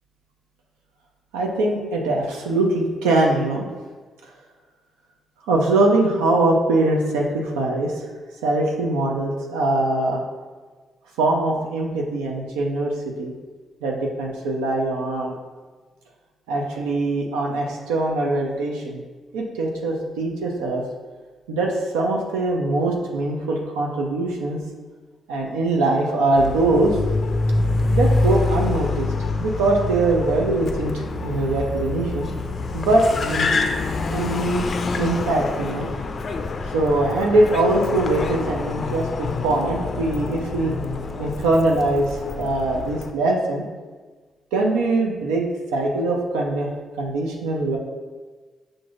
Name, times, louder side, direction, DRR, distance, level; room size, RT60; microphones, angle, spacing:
voice 1, 1.3-3.6 5.5-7.9 8.4-10.2 11.2-12.9 13.2-13.3 13.8-15.3 16.5-19.0 19.3-20.8 21.5-24.6 25.3-27.0 27.9-29.1 29.4-32.3 32.7-33.5 34.1-34.7 34.9-35.9 36.7-40.8 41.2-42.1 42.4-43.6 44.5-46.7 47.0-47.8, right 2 dB, 90° right, -1 dB, 0.4 m, -22 dB
Car, 26.4-43.1, left 3 dB, 50° left, 0.3 m, -26 dB
5.9 x 2.5 x 2.4 m, 1.4 s
hypercardioid pair, 45°, 0 cm